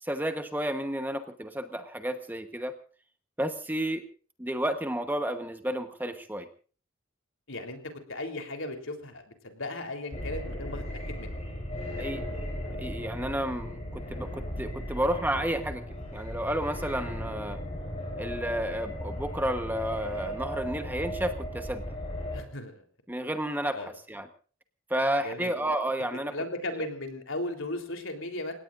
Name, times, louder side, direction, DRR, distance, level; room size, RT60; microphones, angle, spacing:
voice 1, 0.0-2.7 3.4-4.0 4.4-6.5 12.0-12.2 12.8-15.8 16.1-17.6 18.2-22.0 23.1-24.3 24.9-26.3 26.8-26.9, right 1 dB, 10° right, 7 dB, 1.1 m, -31 dB
voice 2, 7.5-7.8 8.1-11.3 22.3-22.8 23.7-23.9 25.2-25.5 26.3-28.5, left 2 dB, 70° left, 5 dB, 3.6 m, -36 dB
sound 1, 10.1-22.4, equal, 30° left, 5.7 m, -36 dB
30.0 x 17.5 x 2.6 m, 0.40 s
head